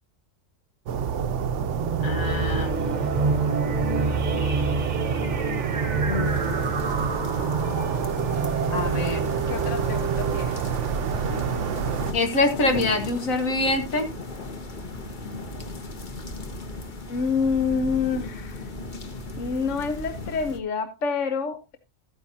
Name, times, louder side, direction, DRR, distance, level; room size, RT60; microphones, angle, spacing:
sound 1, 0.9-12.1, right 7 dB, 65° right, 1.0 m, -28 dB
sound 2, 1.6-11.8, right 3 dB, 35° right, 1.0 m, -28 dB
voice 1, 2.0-2.8 6.0-6.6 8.7-9.2 12.1-14.1, left 2 dB, 85° left, 5 dB, 2.1 m, -25 dB
sound 3, 6.2-20.6, left 2 dB, 40° left, 1.2 m, -37 dB
voice 2, 9.5-10.6 17.1-18.7 19.4-21.8, left 5 dB, 65° left, 8 dB, 1.3 m, -27 dB
13.5 x 9.4 x 2.8 m, 0.25 s
omnidirectional pair, 1.4 m